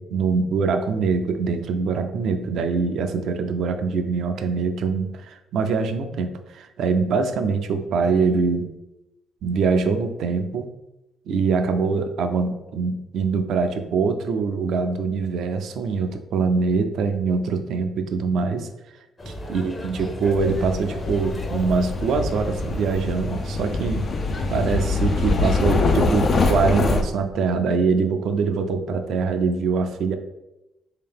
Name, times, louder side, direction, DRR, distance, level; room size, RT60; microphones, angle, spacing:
voice 1, 0.0-8.7 9.4-10.7 11.3-18.7 19.5-24.1 24.5-30.2, right 5 dB, 70° right, 7 dB, 0.4 m, -23 dB
sound 1, 19.2-25.5, left 1 dB, 35° left, 0.8 m, -34 dB
sound 2, 20.4-27.0, left 3 dB, 55° left, 0.4 m, -24 dB
3.3 x 2.8 x 3.5 m, 0.94 s
hypercardioid pair, 55°, 0 cm